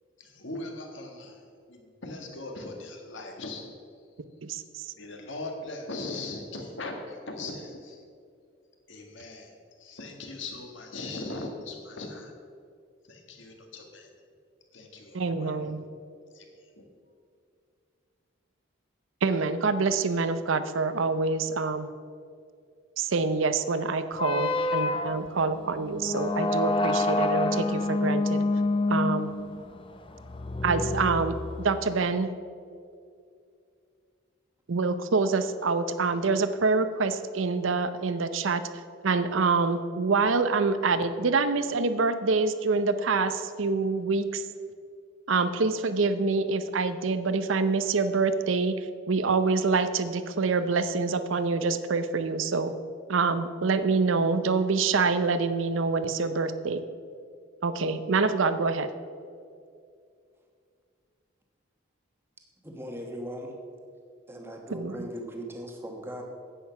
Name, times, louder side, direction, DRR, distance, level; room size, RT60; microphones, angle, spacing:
voice 1, 0.2-1.4 1.7-3.8 4.9-8.0 8.9-12.2 13.1-14.1 14.7-15.5 16.3-16.4 16.8-16.9, left 2 dB, 70° left, 3 dB, 1.7 m, -39 dB
voice 2, 4.4-4.9 15.1-15.8 19.2-21.9 23.0-28.5 28.9-29.3 30.6-32.3 34.7-44.5 45.3-52.7 53.1-56.8 57.6-58.9 64.7-65.1, right 4 dB, 80° right, 11 dB, 0.6 m, -26 dB
sound 1, 24.1-31.9, left 2 dB, 25° left, 0.5 m, -28 dB
voice 3, 62.6-63.6 64.3-66.2, equal, 10° right, 2 dB, 1.2 m, -38 dB
10.0 x 8.4 x 5.8 m, 2.3 s
head